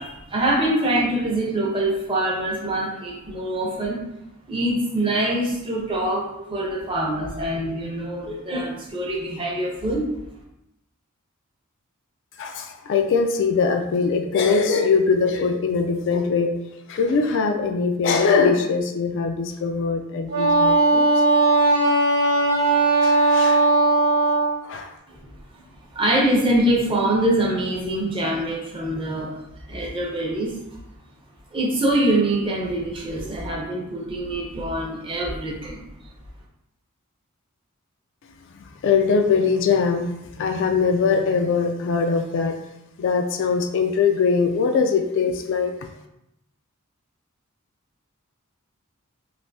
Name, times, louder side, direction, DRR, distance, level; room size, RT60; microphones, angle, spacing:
voice 1, 0.0-4.0 4.5-10.0 25.1-25.3 25.9-29.4 29.7-30.8 31.5-35.9, right 1 dB, 25° right, -2 dB, 0.6 m, -24 dB
voice 2, 12.4-16.6 16.9-21.3 23.0-23.7 24.6-24.9 38.5-42.6 43.0-45.7, left 5 dB, 60° left, 5 dB, 0.3 m, -22 dB
Wind instrument woodwind instrument, 20.3-24.5, right 2 dB, 85° right, 0.9 m, -18 dB
3.3 x 2.6 x 2.7 m, 0.85 s
head